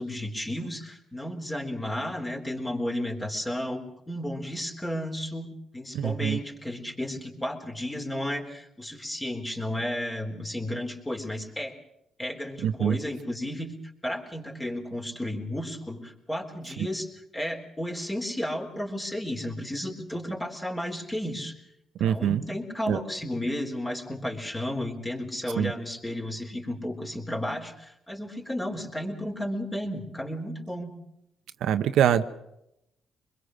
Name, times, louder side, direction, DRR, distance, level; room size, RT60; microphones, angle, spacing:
voice 1, 0.0-11.8 12.2-13.7 14.0-17.1 17.3-21.6 22.0-30.9, left 1 dB, 15° left, 3 dB, 3.8 m, -33 dB
voice 2, 5.9-6.4 12.6-13.0 22.0-22.4 22.9-23.0 25.6-25.7 31.6-32.2, right 9 dB, 80° right, 9 dB, 1.0 m, -24 dB
25.0 x 21.5 x 6.4 m, 0.83 s
cardioid pair, 90°, 0 cm